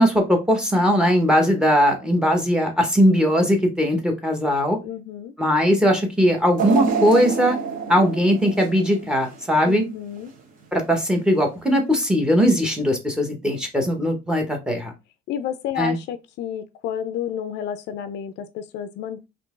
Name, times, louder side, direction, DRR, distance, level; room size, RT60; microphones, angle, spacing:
voice 1, 0.0-4.8 5.4-7.6 7.9-9.9 10.7-14.9 15.8-16.0, equal, 5° right, 0.8 m, -19 dB
voice 2, 4.8-5.3 9.6-10.3 15.3-19.3, left 9 dB, 65° left, 0.5 m, -31 dB
sound 1, 6.6-9.7 10.2-10.3 11.3-11.4, right 5 dB, 45° right, 0.9 m, -27 dB
3.8 x 2.9 x 3.5 m
cardioid pair, 175°, 20 cm